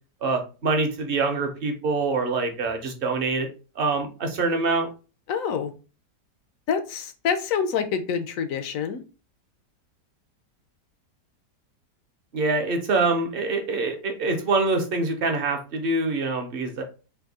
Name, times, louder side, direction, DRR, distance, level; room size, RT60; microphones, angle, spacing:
voice 1, 0.2-3.5 3.8-4.9 12.3-16.8, right 3 dB, 50° right, 4 dB, 0.7 m, -25 dB
voice 2, 5.3-5.7 6.7-9.0, left 7 dB, 65° left, 8 dB, 0.9 m, -26 dB
3.5 x 2.7 x 4.0 m, 0.33 s
omnidirectional pair, 1.8 m